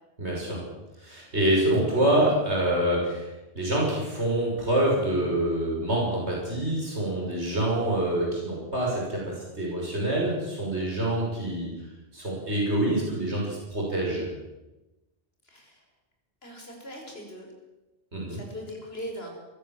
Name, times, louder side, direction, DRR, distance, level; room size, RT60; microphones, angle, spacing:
voice 1, 0.2-0.6 1.0-11.7 12.1-14.3 18.1-18.4, right 1 dB, 75° right, -3 dB, 6.7 m, -26 dB
voice 2, 15.4-15.8 16.4-17.5 18.3-19.3, equal, 60° left, 1 dB, 5.7 m, -40 dB
22.0 x 16.0 x 7.5 m, 1.0 s
omnidirectional pair, 1.1 m